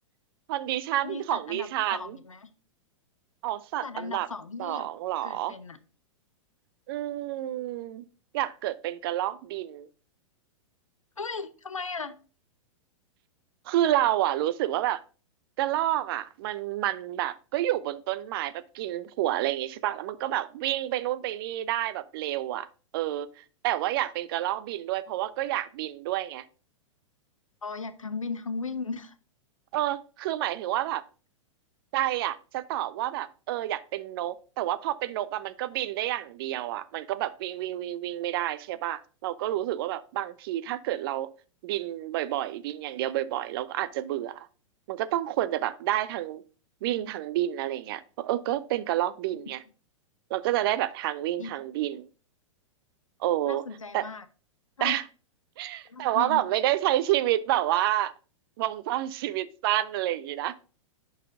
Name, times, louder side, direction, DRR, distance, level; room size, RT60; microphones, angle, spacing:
voice 1, 0.5-2.2 3.4-4.3 4.6-5.5 6.9-8.1 8.3-9.9 13.7-15.0 15.6-22.7 22.9-26.4 29.7-31.0 31.9-41.3 41.6-44.5 44.9-46.4 46.8-49.6 50.3-52.1 53.2-53.6 53.9-54.0 54.8-55.0 55.6-58.1 58.6-60.6, right 14 dB, 45° right, 0.5 m, -29 dB
voice 2, 1.0-2.5 3.8-4.9 5.2-5.8 11.2-12.1 27.6-29.1 51.4-51.5 53.5-54.3 54.8-55.0 55.8-56.4, left 4 dB, 90° left, 0.7 m, -36 dB
10.5 x 4.0 x 2.6 m
figure-of-eight pair, 105°, 16 cm